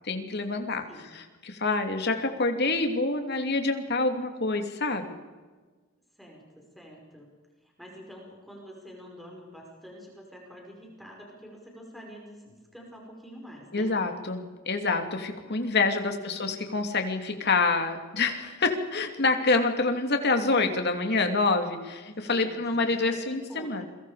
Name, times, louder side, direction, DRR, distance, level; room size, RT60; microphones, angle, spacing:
voice 1, 0.0-0.8 1.1-5.1 13.7-23.8, left 3 dB, 50° left, 5 dB, 2.8 m, -27 dB
voice 2, 6.2-7.3 7.6-14.0 15.6-16.4 22.3-23.8, equal, ahead, -1 dB, 5.4 m, -47 dB
29.0 x 23.0 x 5.1 m, 1.4 s
head